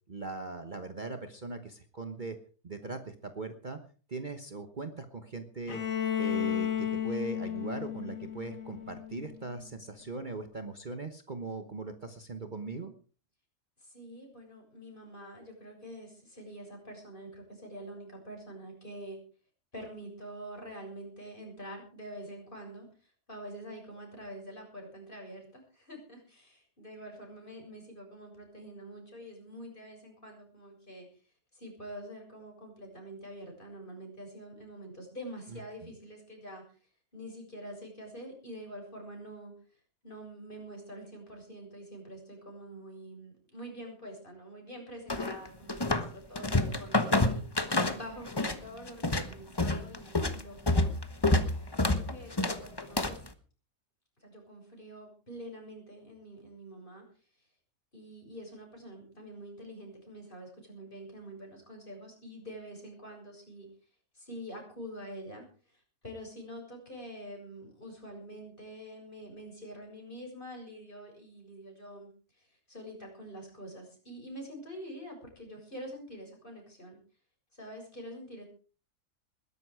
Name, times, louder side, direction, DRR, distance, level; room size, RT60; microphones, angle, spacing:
voice 1, 0.1-2.4 2.6-3.8 4.1-5.8 6.2-12.9 35.5-35.9, right 3 dB, 35° right, 8 dB, 1.3 m, -40 dB
Bowed string instrument, 5.7-9.5, left 9 dB, 70° left, 2.5 m, -33 dB
voice 2, 13.8-19.2 19.7-22.9 23.3-31.1 31.5-36.6 37.1-39.5 40.0-47.4 47.9-50.9 51.8-53.2 54.2-57.0 57.9-63.7 64.1-72.1 72.4-77.0 77.5-78.4, equal, 35° left, 1 dB, 7.3 m, -46 dB
sound 1, 45.1-46.1 46.4-48.6 48.9-53.3, left 2 dB, 20° left, 1.2 m, -28 dB
21.0 x 11.5 x 4.8 m, 0.38 s
omnidirectional pair, 1.5 m